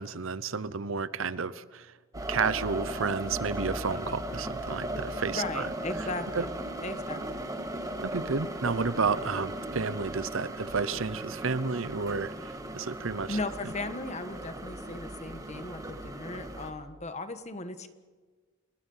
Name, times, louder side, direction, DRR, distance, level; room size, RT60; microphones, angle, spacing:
voice 1, 0.0-1.9 2.3-5.7 6.3-6.4 8.0-13.4, right 5 dB, 70° right, 16 dB, 0.8 m, -31 dB
sound 1, 2.1-16.7, right 1 dB, 15° right, 1.9 m, -37 dB
voice 2, 5.3-7.5 13.3-17.9, left 2 dB, 35° left, 9 dB, 1.5 m, -37 dB
30.0 x 20.0 x 5.7 m, 1.4 s
head